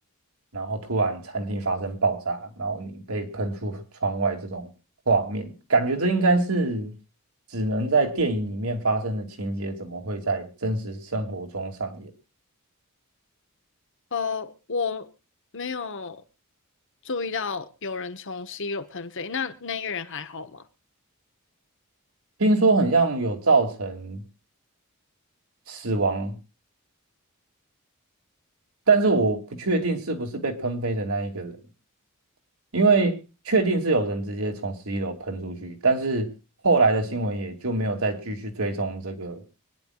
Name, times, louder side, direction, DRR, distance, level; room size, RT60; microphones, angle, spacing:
voice 1, 0.5-4.7 5.1-6.9 7.5-12.1 22.4-24.2 25.7-26.4 28.9-31.6 32.7-33.2 33.5-36.3 36.6-39.4, right 3 dB, 70° right, 2.7 m, -24 dB
voice 2, 14.1-15.1 15.5-16.2 17.0-20.6, left 5 dB, 60° left, 1.4 m, -31 dB
24.5 x 10.0 x 2.4 m
head